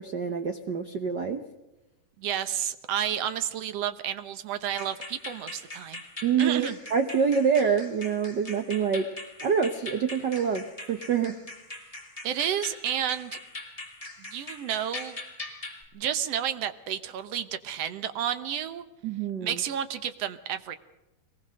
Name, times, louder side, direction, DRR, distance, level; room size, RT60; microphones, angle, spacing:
voice 1, 0.0-1.4 6.2-9.0 9.4-11.4 19.0-19.6, right 6 dB, 85° right, 6 dB, 0.9 m, -26 dB
voice 2, 2.2-6.0 6.4-6.8 12.2-13.4 14.2-15.2 15.9-18.8 19.4-20.8, right 9 dB, 65° right, 11 dB, 1.8 m, -31 dB
sound 1, 4.7-15.8, left 2 dB, 10° left, 2.5 m, -42 dB
23.0 x 19.0 x 6.4 m, 0.97 s
omnidirectional pair, 3.6 m